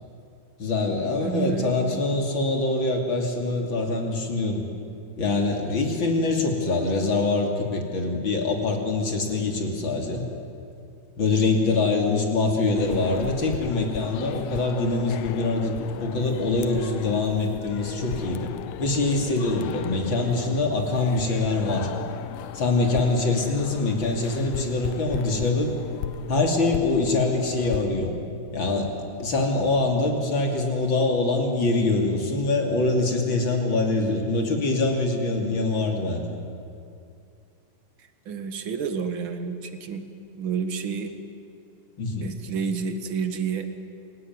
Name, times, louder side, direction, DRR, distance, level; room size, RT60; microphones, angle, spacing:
voice 1, 0.6-4.6 5.2-10.2 11.2-18.5 18.8-21.9 22.5-25.7 26.3-28.1 28.5-28.9 29.2-36.2 42.0-42.3, left 3 dB, 40° left, 2 dB, 3.4 m, -24 dB
voice 2, 1.2-2.1 38.3-40.0 40.4-41.1 42.2-43.7, right 6 dB, 50° right, 7 dB, 2.0 m, -29 dB
sound 1, 12.8-27.8, left 11 dB, 75° left, 1.9 m, -36 dB
28.0 x 17.5 x 9.6 m, 2.5 s
omnidirectional pair, 3.5 m